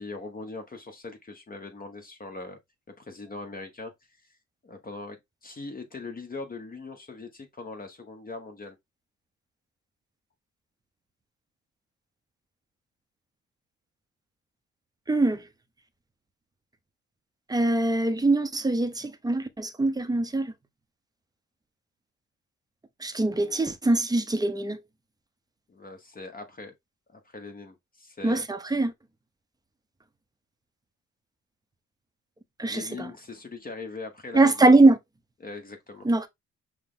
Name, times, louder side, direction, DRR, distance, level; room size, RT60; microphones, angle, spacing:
voice 1, 0.0-2.6 3.0-3.9 4.6-8.8 25.7-26.7 27.1-28.4 32.7-34.9 35.4-36.1, left 3 dB, 30° left, 1.1 m, -41 dB
voice 2, 15.1-15.4 17.5-20.5 23.0-24.8 28.2-28.9 32.6-33.1 34.3-35.0 36.0-36.3, right 2 dB, 15° right, 0.8 m, -22 dB
5.9 x 2.2 x 3.7 m
cardioid pair, 90°, 30 cm